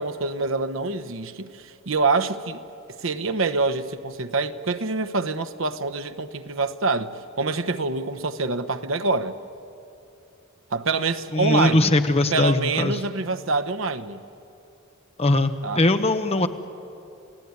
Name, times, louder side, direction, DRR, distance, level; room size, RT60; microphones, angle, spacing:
voice 1, 0.0-2.6 3.0-9.3 10.7-11.9 12.3-14.2 15.6-15.8, right 3 dB, 70° right, 1.0 m, -26 dB
voice 2, 11.3-13.0 15.2-16.5, left 2 dB, 30° left, 1.0 m, -21 dB
29.0 x 17.0 x 9.6 m
head